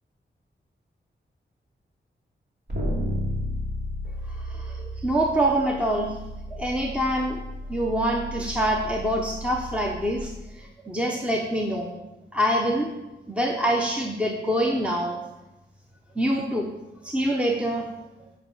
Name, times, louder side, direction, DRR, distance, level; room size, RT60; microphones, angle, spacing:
sound 1, 2.7-10.2, equal, 60° right, 2.6 m, -33 dB
voice 1, 4.3-6.2 6.5-7.4 7.7-11.9 12.3-12.9 13.3-15.2 16.2-16.7 17.0-17.8, right 1 dB, 5° right, 0 dB, 0.8 m, -25 dB
8.0 x 5.4 x 7.3 m, 1.0 s
wide cardioid pair, 125°, 19 cm